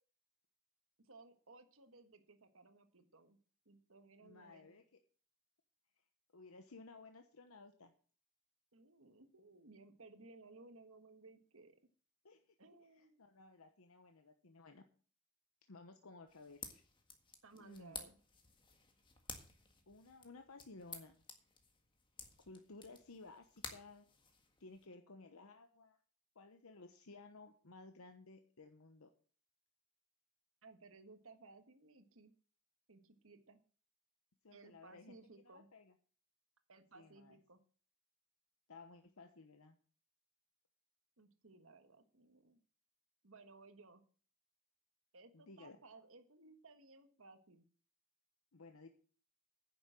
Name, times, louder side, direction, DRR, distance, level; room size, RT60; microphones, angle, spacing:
voice 1, 1.0-3.4 3.6-4.8 8.7-11.8 12.6-13.2 17.4-18.2 30.6-32.3 32.9-33.6 34.5-35.7 36.7-37.6 41.2-42.6 43.2-44.0 45.1-47.7, right 3 dB, 65° right, 8 dB, 1.5 m, -60 dB
voice 2, 4.2-4.8 6.3-7.9 12.2-12.4 12.7-14.8 15.7-16.8 17.6-18.1 19.9-21.2 22.4-24.1 24.6-26.0 26.3-29.1 34.4-35.1 35.4-35.9 36.9-37.4 38.7-39.8 45.3-45.8 48.5-48.9, left 3 dB, 75° left, 6 dB, 1.0 m, -57 dB
sound 1, 16.3-24.8, left 5 dB, 25° left, 1.7 m, -54 dB
10.0 x 7.2 x 7.7 m, 0.42 s
head